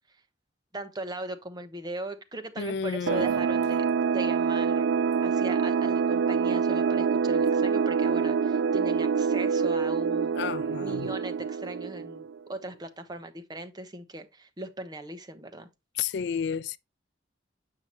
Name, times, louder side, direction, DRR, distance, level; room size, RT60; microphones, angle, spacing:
voice 1, 0.7-3.8 4.1-4.9 5.2-10.3 10.8-15.7, right 2 dB, 20° right, 0.9 m, -39 dB
voice 2, 2.6-3.4 5.3-5.4 10.3-11.1 15.9-16.8, left 7 dB, 65° left, 0.3 m, -32 dB
sound 1, 3.1-12.4, right 6 dB, 85° right, 0.3 m, -26 dB
7.9 x 5.7 x 2.9 m
head